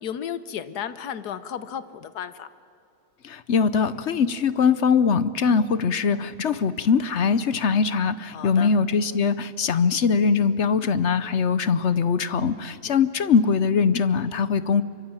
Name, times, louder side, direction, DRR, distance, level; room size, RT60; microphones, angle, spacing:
voice 1, 0.0-2.5 8.3-8.7 12.9-13.0, left 9 dB, 75° left, 13 dB, 1.5 m, -33 dB
voice 2, 3.2-14.8, left 5 dB, 55° left, 14 dB, 0.9 m, -22 dB
26.0 x 23.5 x 9.0 m, 2.8 s
omnidirectional pair, 1.7 m